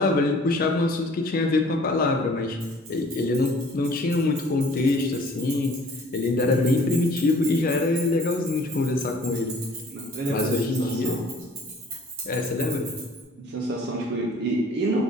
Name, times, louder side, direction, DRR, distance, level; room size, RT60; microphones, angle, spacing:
voice 1, 0.0-2.6 2.9-5.8 6.1-9.6 10.3-11.3 12.2-12.9, left 2 dB, 45° left, 5 dB, 0.4 m, -24 dB
Keys jangling, 2.6-13.2, right 3 dB, 80° right, 1.0 m, -38 dB
voice 2, 6.5-6.9 9.9-11.2 13.4-15.0, right 2 dB, 55° right, -2 dB, 0.5 m, -29 dB
3.5 x 2.5 x 3.7 m, 1.3 s
head